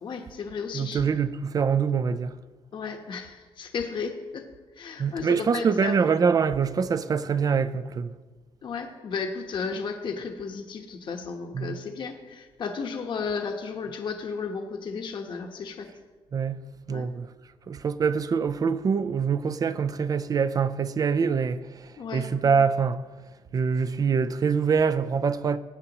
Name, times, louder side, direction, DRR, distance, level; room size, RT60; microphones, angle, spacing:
voice 1, 0.0-1.0 2.7-4.4 4.8-6.0 8.6-15.9 16.9-17.1 22.0-22.3, left 5 dB, 50° left, 1.1 m, -34 dB
voice 2, 0.7-2.3 5.0-8.1 11.5-11.8 16.3-16.6 16.9-17.3 17.7-21.6 22.1-23.0 23.5-25.6, right 6 dB, 35° right, 0.5 m, -24 dB
19.5 x 8.3 x 3.0 m
cardioid pair, 120°, 10 cm